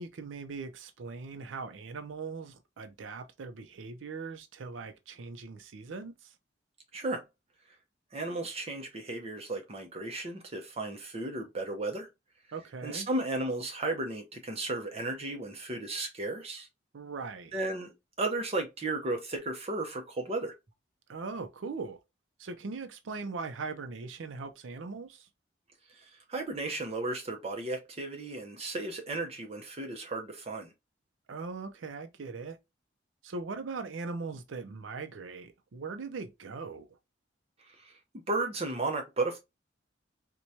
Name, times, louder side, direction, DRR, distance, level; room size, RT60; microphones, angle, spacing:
voice 1, 0.0-6.3 12.5-13.1 16.9-17.6 21.1-22.0 22.4-25.3 31.3-32.6 33.2-36.9, right 4 dB, 80° right, 0.5 m, -40 dB
voice 2, 6.9-7.2 8.1-12.1 12.8-16.7 17.5-17.9 18.2-20.5 25.9-30.7 37.8-39.4, right 2 dB, 30° right, 0.6 m, -34 dB
4.4 x 2.2 x 2.6 m
head